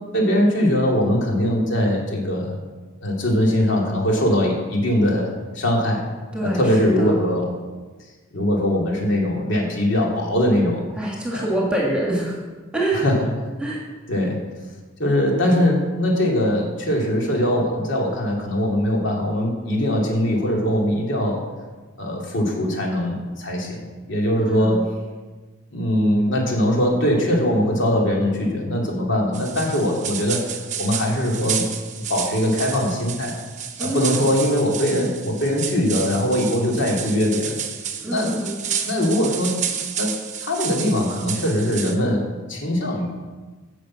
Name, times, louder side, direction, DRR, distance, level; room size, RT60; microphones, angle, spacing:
voice 1, 0.1-2.6 3.0-6.0 6.4-7.5 8.3-10.8 11.3-11.5 12.9-13.3 14.1-14.4 15.0-21.4 22.0-24.9 25.7-30.5 30.8-31.7 32.1-33.4 33.8-37.6 38.1-38.3 38.8-39.6 40.0-43.1, equal, 60° left, -1 dB, 2.6 m, -21 dB
voice 2, 6.3-7.2 11.0-12.3 12.7-13.0 13.6-13.8 24.4-24.8 33.8-34.2 38.0-38.6, right 1 dB, 5° right, -3 dB, 1.8 m, -25 dB
sound 1, 29.3-42.0, right 8 dB, 35° right, 0.9 m, -31 dB
10.5 x 6.6 x 7.5 m, 1.3 s
head